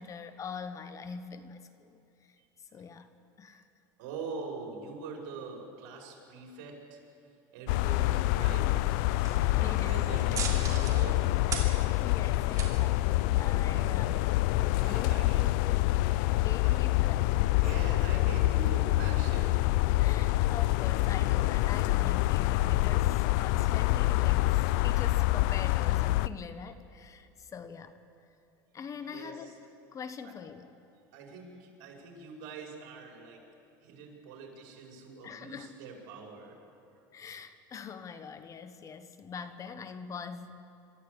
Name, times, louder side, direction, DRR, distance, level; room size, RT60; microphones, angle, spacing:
voice 1, 0.0-2.4 2.7-3.1 3.4-3.6 9.6-10.0 11.5-17.7 20.0-28.0 28.7-29.6 29.9-30.7 35.2-35.7 37.1-40.6, left 6 dB, 30° left, 11 dB, 1.2 m, -43 dB
voice 2, 4.0-8.8 9.4-11.3 13.3-14.2 14.8-15.5 16.6-16.8 17.4-19.7 29.0-29.5 31.1-33.4 33.8-36.6 37.0-37.1, right 4 dB, 75° right, 0 dB, 5.4 m, -44 dB
sound 1, 7.7-26.3, left 17 dB, 75° left, 0.4 m, -26 dB
sound 2, 7.9-14.0, right 6 dB, 35° right, 3.1 m, -42 dB
sound 3, 12.5-12.6 14.8-15.2 17.6-18.1, equal, ahead, 1.3 m, -51 dB
26.0 x 13.5 x 8.4 m, 2.7 s
supercardioid pair, 120°, 10 cm